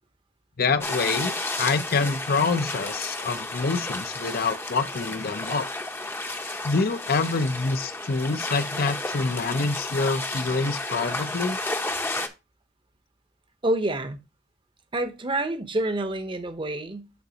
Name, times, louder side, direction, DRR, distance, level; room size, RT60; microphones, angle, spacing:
voice 1, 0.6-5.7 6.6-11.6, left 4 dB, 55° left, 0.6 m, -26 dB
sound 1, 0.8-12.3, left 2 dB, 15° left, 0.7 m, -32 dB
voice 2, 13.6-14.2 14.9-17.1, right 1 dB, 30° right, 0.8 m, -27 dB
11.5 x 4.0 x 2.8 m
head